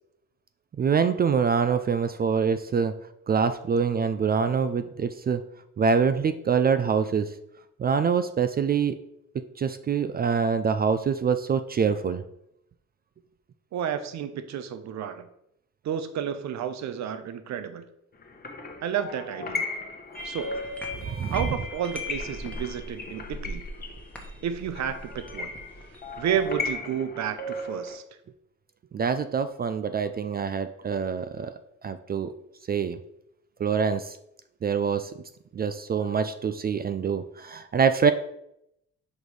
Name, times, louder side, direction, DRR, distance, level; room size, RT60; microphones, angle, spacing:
voice 1, 0.8-2.9 3.3-5.4 5.8-7.3 7.8-9.0 9.3-12.2 21.1-21.4 28.9-31.5 31.8-32.3 32.7-33.0 33.6-34.2 34.6-35.1 35.5-38.1, right 6 dB, 30° right, 11 dB, 0.4 m, -25 dB
voice 2, 13.7-15.3 15.8-17.8 18.8-19.7 20.2-20.7 21.3-23.6 24.4-25.5 26.2-28.0, right 8 dB, 65° right, 11 dB, 0.7 m, -31 dB
sound 1, 18.2-27.9, left 2 dB, 30° left, 1.1 m, -37 dB
sound 2, 20.1-26.7, left 2 dB, 5° left, 1.2 m, -39 dB
5.2 x 4.1 x 4.7 m, 0.78 s
cardioid pair, 90°, 30 cm